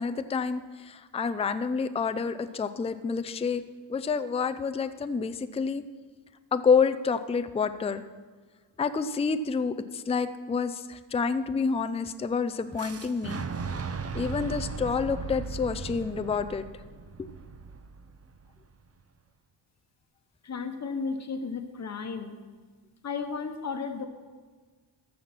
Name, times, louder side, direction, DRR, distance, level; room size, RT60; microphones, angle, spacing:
voice 1, 0.0-3.6 3.9-5.8 6.5-8.0 8.8-13.4 14.1-16.6 17.2-17.3, left 5 dB, 15° left, 10 dB, 0.4 m, -28 dB
Boom, 12.8-18.7, right 5 dB, 30° right, 0.6 m, -37 dB
voice 2, 20.4-22.4 23.0-24.1, left 5 dB, 35° left, 6 dB, 1.1 m, -34 dB
14.0 x 5.7 x 5.9 m, 1.5 s
cardioid pair, 95°, 49 cm